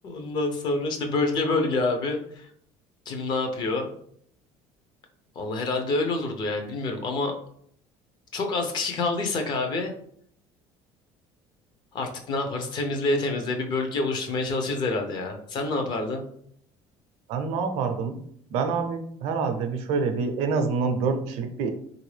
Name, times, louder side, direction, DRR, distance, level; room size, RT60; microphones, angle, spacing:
voice 1, 0.0-2.5 3.1-3.9 5.4-7.4 8.3-9.9 11.9-16.2, left 3 dB, 45° left, 4 dB, 0.6 m, -27 dB
voice 2, 17.3-18.2 18.5-21.7, right 5 dB, 70° right, 7 dB, 0.5 m, -26 dB
3.3 x 2.5 x 3.2 m, 0.65 s
cardioid pair, 160°, 11 cm